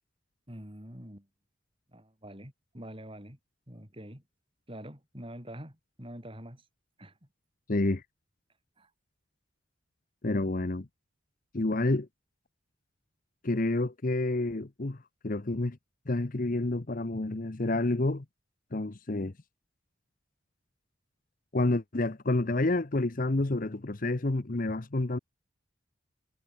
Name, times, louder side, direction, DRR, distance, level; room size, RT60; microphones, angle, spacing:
voice 1, 0.5-1.3 1.9-3.4 3.7-4.2 4.7-6.6 7.0-7.1 8.8-8.9, equal, 25° right, 6.5 m, -45 dB
voice 2, 7.7-8.0 10.2-10.9 11.5-12.1 13.4-15.8 16.1-18.2 18.7-19.3 21.5-25.2, left 2 dB, 40° left, 0.9 m, -29 dB
head